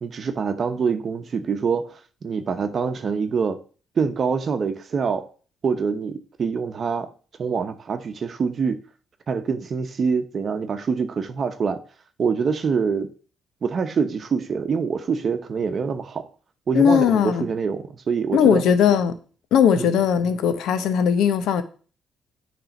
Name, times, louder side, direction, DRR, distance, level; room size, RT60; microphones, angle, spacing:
voice 1, 0.0-3.6 4.0-5.3 5.6-7.1 7.4-8.8 9.3-11.8 12.2-13.1 13.6-16.2 16.7-18.6 19.7-20.0, right 5 dB, 50° right, 0.8 m, -25 dB
voice 2, 16.7-17.5 18.3-19.2 19.5-21.6, left 8 dB, 85° left, 0.8 m, -18 dB
8.8 x 3.4 x 5.2 m
cardioid pair, 90°, 0 cm